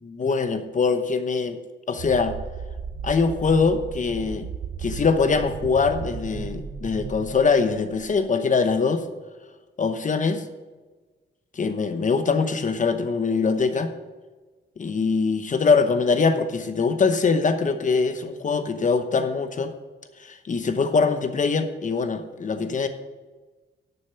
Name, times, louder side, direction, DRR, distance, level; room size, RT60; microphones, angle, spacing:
voice 1, 0.0-1.6 1.9-2.4 3.0-4.5 4.8-9.0 9.8-10.4 11.5-13.9 14.8-19.7 20.2-22.9, left 4 dB, 40° left, 9 dB, 0.9 m, -23 dB
sound 1, 2.0-8.2, right 6 dB, 55° right, 0.9 m, -35 dB
11.5 x 6.8 x 5.8 m, 1.3 s
wide cardioid pair, 135°, 20 cm